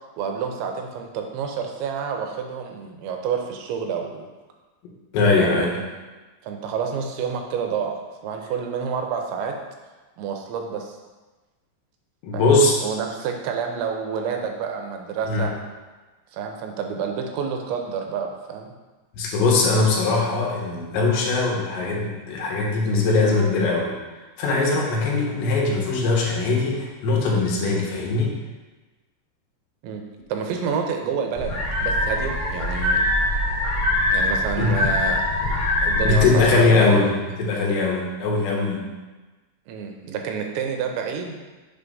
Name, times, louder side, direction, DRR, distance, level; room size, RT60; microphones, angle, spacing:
voice 1, 0.2-4.3 5.4-5.9 6.4-9.6 10.2-11.0 12.3-12.5 12.8-15.5 16.3-18.7 24.9-25.1 29.8-30.0 30.3-33.0 34.1-35.2 35.8-37.0 39.7-41.5, right 6 dB, 90° right, 3 dB, 3.1 m, -29 dB
voice 2, 5.1-5.8 12.2-12.7 15.3-15.5 19.1-23.9 24.4-28.3 34.1-34.2 34.6-34.8 36.0-38.9, left 3 dB, 80° left, -2 dB, 3.3 m, -21 dB
sound 1, 31.3-36.4, left 1 dB, 50° left, 1.6 m, -23 dB
7.0 x 3.5 x 5.4 m, 1.2 s
omnidirectional pair, 5.1 m